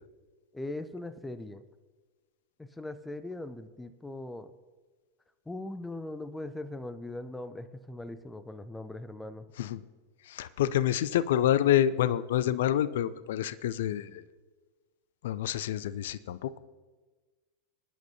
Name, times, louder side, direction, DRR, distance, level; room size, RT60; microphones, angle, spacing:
voice 1, 0.5-1.6 2.6-4.5 5.5-9.5, left 2 dB, 5° left, 12 dB, 0.6 m, -40 dB
voice 2, 10.3-14.2 15.2-16.6, left 11 dB, 55° left, 17 dB, 0.4 m, -27 dB
21.5 x 10.5 x 2.8 m, 1.4 s
figure-of-eight pair, 90°, 0 cm